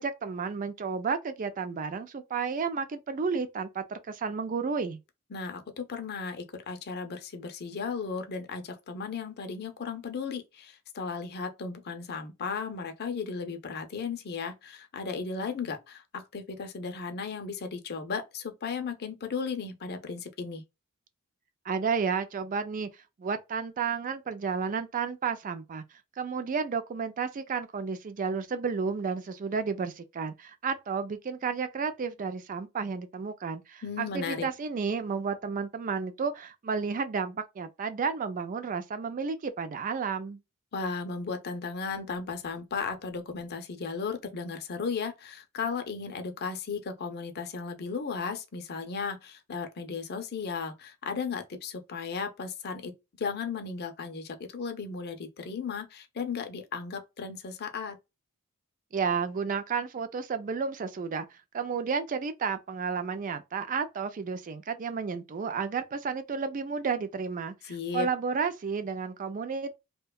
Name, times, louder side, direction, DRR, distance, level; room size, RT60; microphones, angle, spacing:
voice 1, 0.0-5.0 21.6-22.9 23.2-25.8 26.2-40.4 58.9-69.8, right 5 dB, 35° right, 0.3 m, -32 dB
voice 2, 5.3-20.6 33.8-34.5 40.7-52.9 53.2-58.0 67.6-68.1, left 5 dB, 45° left, 0.5 m, -35 dB
2.7 x 2.2 x 2.2 m
head